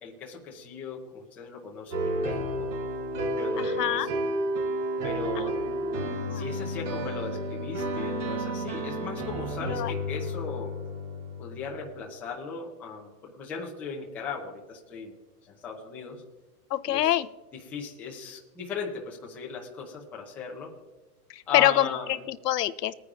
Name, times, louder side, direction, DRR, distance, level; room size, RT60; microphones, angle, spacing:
voice 1, 0.0-2.7 3.4-4.1 5.0-5.6 6.3-10.7 11.4-15.2 15.4-16.2 16.9-17.1 17.7-20.7 21.5-22.1, left 5 dB, 5° left, -3 dB, 0.5 m, -37 dB
sound 1, 1.9-11.7, right 1 dB, 65° right, 3.9 m, -31 dB
voice 2, 3.6-4.1 6.0-6.4 9.6-9.9 16.7-17.3 21.3-22.9, left 12 dB, 75° left, 14 dB, 0.7 m, -26 dB
20.5 x 9.7 x 2.4 m, 1.2 s
hypercardioid pair, 150°, 49 cm